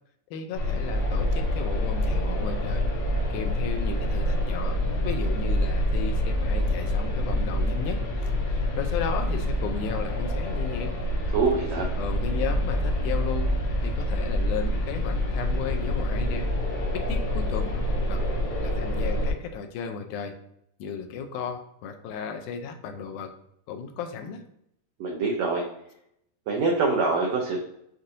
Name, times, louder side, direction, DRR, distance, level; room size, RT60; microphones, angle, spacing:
voice 1, 0.3-2.9 3.3-10.9 12.0-16.5 16.9-17.8 18.1-18.2 18.6-20.3 20.8-23.3 23.7-24.4, left 6 dB, 80° left, 6 dB, 1.9 m, -35 dB
sound 1, 0.5-19.3, left 1 dB, 60° left, 2.1 m, -26 dB
voice 2, 11.3-11.9 25.0-25.6 26.5-27.6, right 4 dB, 80° right, -1 dB, 1.5 m, -24 dB
7.3 x 2.6 x 2.6 m, 0.75 s
omnidirectional pair, 3.9 m